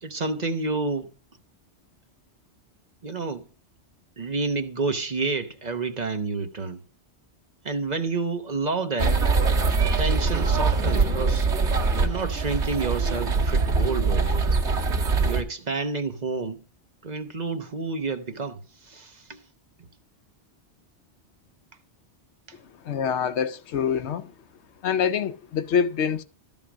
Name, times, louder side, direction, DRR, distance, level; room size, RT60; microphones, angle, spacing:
voice 1, 0.0-1.1 3.0-3.4 4.2-6.8 7.6-9.2 9.8-11.5 12.0-14.6 15.2-16.6 17.0-19.4, right 3 dB, 40° right, 1.0 m, -29 dB
sound 1, 9.0-15.4, right 4 dB, 85° right, 1.7 m, -23 dB
voice 2, 22.8-24.3 24.8-26.2, left 7 dB, 80° left, 1.0 m, -25 dB
13.0 x 5.3 x 6.1 m
omnidirectional pair, 1.1 m